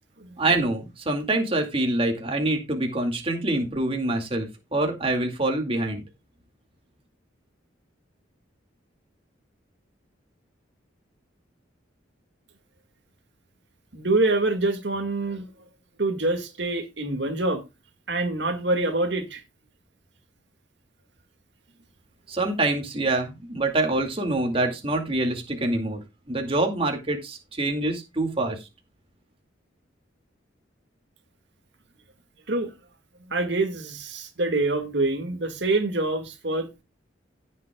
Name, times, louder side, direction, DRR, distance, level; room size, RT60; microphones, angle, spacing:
voice 1, 0.4-6.0 22.3-28.7, right 2 dB, 30° right, 2.3 m, -25 dB
voice 2, 13.9-15.5 16.0-17.6 18.1-19.4 32.5-32.7 33.3-36.8, right 2 dB, 60° right, 2.1 m, -25 dB
16.5 x 7.5 x 2.3 m
head